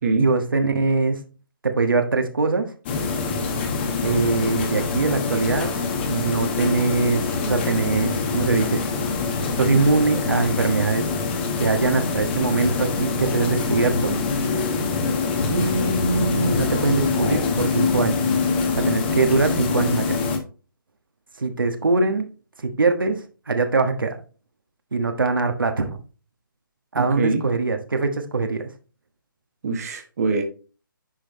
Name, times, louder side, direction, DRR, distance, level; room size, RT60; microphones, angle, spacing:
voice 1, 0.2-1.2 1.6-2.7 4.0-5.7 6.1-8.8 9.5-11.1 11.6-14.2 15.5-18.2 18.8-20.2 21.4-22.2 22.6-24.2 24.9-26.0 26.9-28.7, right 3 dB, 70° right, 1.3 m, -22 dB
sound 1, 2.9-20.4, left 4 dB, 30° left, 1.4 m, -24 dB
voice 2, 26.9-27.4 29.6-30.4, right 4 dB, 45° right, 1.3 m, -23 dB
10.0 x 5.0 x 3.1 m
figure-of-eight pair, 145°, 12 cm